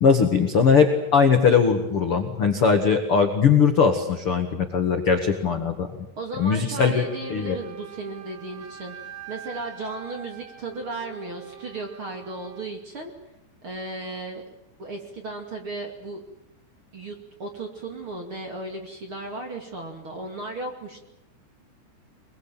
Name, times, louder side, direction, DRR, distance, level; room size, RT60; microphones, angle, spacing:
voice 1, 0.0-6.0 6.4-7.6, left 6 dB, 60° left, 5 dB, 1.4 m, -20 dB
voice 2, 6.2-9.0 9.3-13.1 13.6-14.4 14.8-16.2 16.9-17.1 17.4-21.0, right 2 dB, 35° right, 3 dB, 2.4 m, -35 dB
Wind instrument woodwind instrument, 6.8-12.7, right 8 dB, 85° right, 6.1 m, -43 dB
24.0 x 22.5 x 9.0 m, 0.87 s
omnidirectional pair, 5.5 m